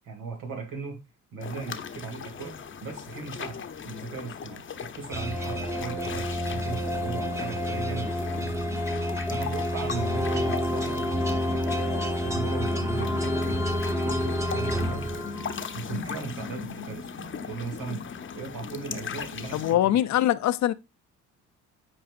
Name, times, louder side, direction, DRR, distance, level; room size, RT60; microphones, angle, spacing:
voice 1, 0.0-1.0 1.3-8.6 9.3-11.1 11.5-15.1 15.7-18.0 18.3-20.0, right 4 dB, 85° right, 2.6 m, -38 dB
sound 1, 1.4-19.7, left 6 dB, 40° left, 0.8 m, -38 dB
sound 2, 5.1-15.8, equal, 10° right, 1.0 m, -29 dB
voice 2, 19.5-20.7, left 12 dB, 70° left, 0.5 m, -23 dB
8.7 x 4.7 x 2.5 m
cardioid pair, 90°, 30 cm